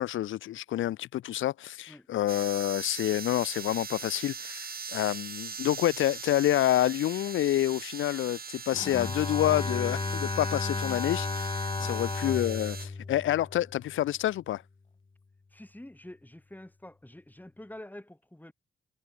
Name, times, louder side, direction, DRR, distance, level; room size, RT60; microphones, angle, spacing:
voice 1, 0.0-14.6, left 13 dB, 80° left, 2.2 m, -28 dB
sound 1, 2.3-12.9, right 6 dB, 50° right, 7.9 m, -41 dB
Bowed string instrument, 8.7-14.0, left 3 dB, 25° left, 1.2 m, -33 dB
voice 2, 15.5-18.5, left 1 dB, 10° left, 7.5 m, -47 dB
supercardioid pair, 55°, 20 cm